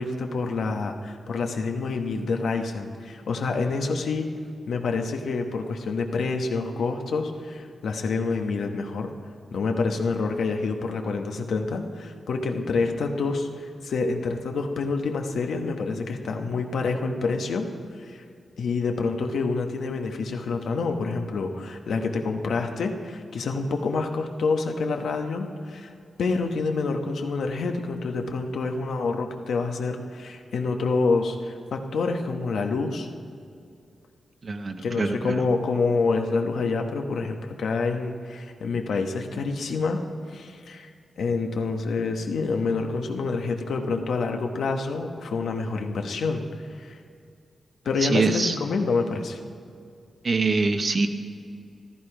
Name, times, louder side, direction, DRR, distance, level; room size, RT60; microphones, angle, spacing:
voice 1, 0.0-4.3 4.7-9.1 9.5-17.7 18.0-18.2 18.6-25.9 26.2-33.1 34.8-40.0 40.3-47.0 47.8-49.4, left 4 dB, 80° left, 4 dB, 1.2 m, -27 dB
voice 2, 34.4-35.4 48.0-48.6 50.2-51.1, right 3 dB, 40° right, 6 dB, 0.9 m, -24 dB
14.5 x 13.5 x 4.9 m, 2.4 s
wide cardioid pair, 150°, 0 cm